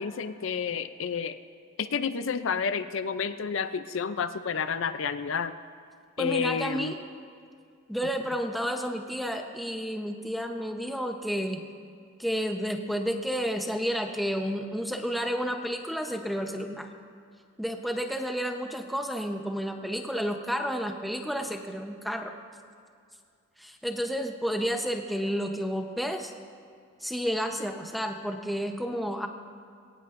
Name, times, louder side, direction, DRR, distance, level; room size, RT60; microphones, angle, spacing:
voice 1, 0.0-1.4 1.8-5.5 6.2-7.0, left 6 dB, 65° left, 11 dB, 0.5 m, -30 dB
voice 2, 6.2-7.0 7.9-11.6 12.2-16.9 17.6-22.3 23.6-26.3 27.0-29.3, equal, ahead, 3 dB, 0.8 m, -31 dB
22.0 x 18.0 x 2.6 m, 2.3 s
head